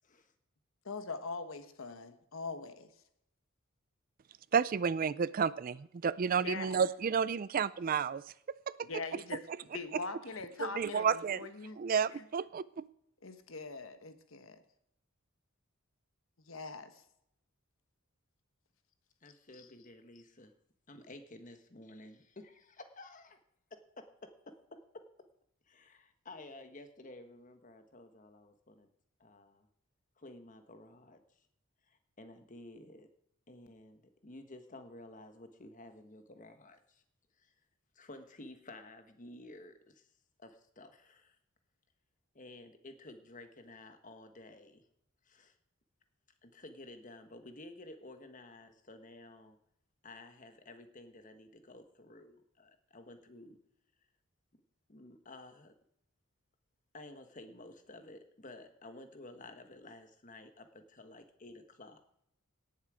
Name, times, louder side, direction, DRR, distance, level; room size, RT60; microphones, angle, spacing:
voice 1, 0.0-0.3 19.2-20.5 20.9-23.3 24.0-24.1 24.7-24.8 25.7-28.9 29.2-29.7 30.2-31.2 31.9-33.1 33.5-37.0 37.4-37.5 37.9-40.1 40.4-41.4 42.3-44.9 45.2-45.5 46.4-49.6 50.0-53.6 54.9-55.7 56.9-62.0, left 2 dB, 40° left, 7 dB, 1.3 m, -52 dB
voice 2, 0.8-2.9 6.4-6.9 8.8-11.8 12.1-12.2 13.2-14.6 16.5-17.0 19.5-19.7, left 3 dB, 70° left, 9 dB, 1.2 m, -42 dB
voice 3, 4.5-8.2 8.7-8.9 9.9-10.1 10.6-11.5 11.8-12.8, right 6 dB, 40° right, 18 dB, 0.4 m, -31 dB
18.0 x 7.3 x 4.9 m, 0.76 s
head